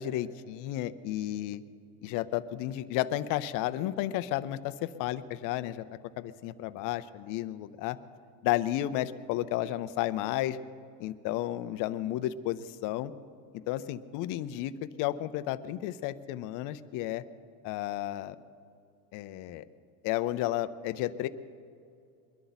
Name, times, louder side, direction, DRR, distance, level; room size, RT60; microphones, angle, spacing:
voice 1, 0.0-1.6 2.0-5.8 6.2-8.0 8.4-10.6 11.0-13.1 13.7-17.2 17.6-18.4 19.1-19.6 20.0-21.3, left 14 dB, 50° left, 13 dB, 0.6 m, -32 dB
22.5 x 11.5 x 4.0 m, 2.5 s
cardioid pair, 170°, 41 cm